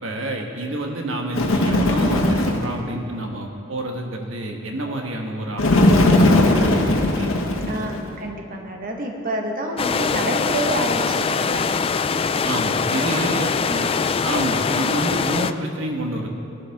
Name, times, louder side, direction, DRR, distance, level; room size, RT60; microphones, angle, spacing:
voice 1, 0.0-7.3 7.6-7.8 12.4-13.5 14.2-16.3, right 1 dB, 70° right, 1 dB, 1.3 m, -28 dB
Bird, 1.3-2.7 5.6-8.1, left 1 dB, 85° left, 1.6 m, -18 dB
voice 2, 7.7-11.7 12.9-13.3 13.6-13.9, right 1 dB, 45° right, 1 dB, 1.4 m, -28 dB
sound 1, 9.8-15.5, left 5 dB, 30° left, 0.3 m, -22 dB
21.0 x 11.5 x 3.6 m, 2.7 s
head